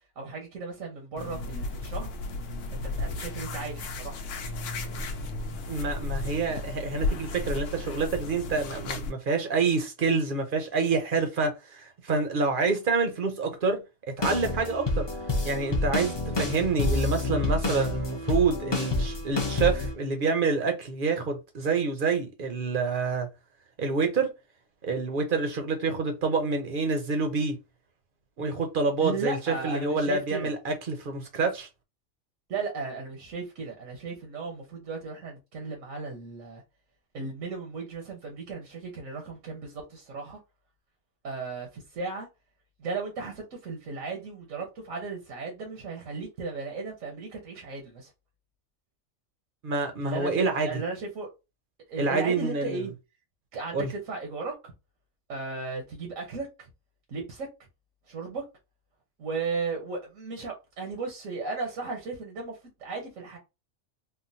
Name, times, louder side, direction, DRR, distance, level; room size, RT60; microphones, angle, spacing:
voice 1, 0.2-2.1 2.8-4.2 29.0-30.5 32.5-36.6 37.1-40.4 41.2-42.3 42.8-48.1 50.0-51.3 51.9-52.9 53.5-54.7 55.3-56.7 57.1-57.5 58.1-58.4 59.2-63.4, right 4 dB, 90° right, 1.3 m, -35 dB
sound 1, 1.2-9.1, left 2 dB, 75° left, 1.0 m, -34 dB
voice 2, 5.7-13.8 14.2-15.1 15.4-23.3 23.8-24.3 24.8-27.6 28.4-31.7 49.6-50.7 52.0-52.8 53.7-53.9, right 4 dB, 50° right, 0.7 m, -27 dB
sound 2, 14.2-19.9, left 2 dB, 30° left, 0.5 m, -28 dB
3.7 x 2.2 x 2.6 m
omnidirectional pair, 1.3 m